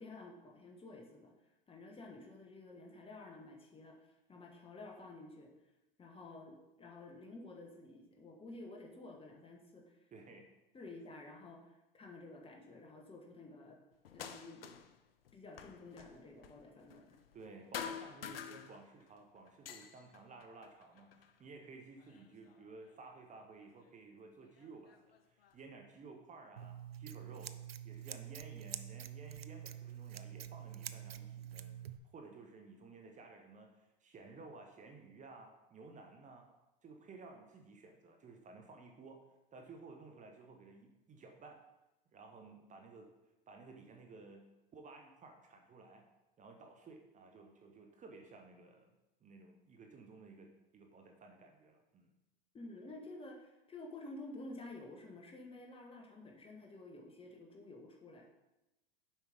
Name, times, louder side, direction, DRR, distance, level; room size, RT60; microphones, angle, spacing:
voice 1, 0.0-1.3 1.7-5.5 6.0-10.1 10.7-13.8 14.1-14.6 15.3-17.2 52.5-58.3, left 2 dB, 20° left, 1 dB, 1.4 m, -51 dB
voice 2, 10.1-10.5 17.3-27.5 27.8-36.5 36.8-39.2 39.5-41.6 42.1-43.1 43.5-44.5 44.7-46.1 46.4-48.9 49.2-52.1, right 3 dB, 25° right, 3 dB, 1.1 m, -55 dB
sound 1, 14.0-15.0 15.3-17.5 17.7-19.1 19.5-21.4 22.0-22.9 23.9-24.0 24.6-25.6, left 7 dB, 75° left, 0.7 m, -48 dB
Scissors, 26.6-32.0, right 10 dB, 90° right, 0.5 m, -47 dB
7.6 x 5.2 x 5.1 m, 0.98 s
hypercardioid pair, 90°, 29 cm